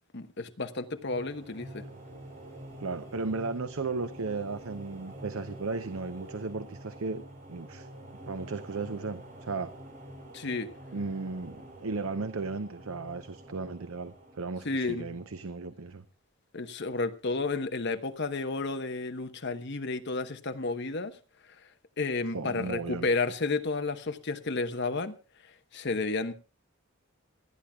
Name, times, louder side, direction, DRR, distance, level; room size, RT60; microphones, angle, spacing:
voice 1, 0.1-1.8 10.3-10.7 14.6-15.1 16.5-21.2 22.0-25.2 25.7-26.3, left 3 dB, 50° left, 1.1 m, -31 dB
sound 1, 0.7-16.0, right 1 dB, 35° right, 4.9 m, -47 dB
voice 2, 2.8-7.2 7.5-7.9 8.3-9.7 10.9-16.0 22.3-23.1, right 3 dB, 75° right, 0.8 m, -35 dB
28.0 x 10.5 x 2.3 m
head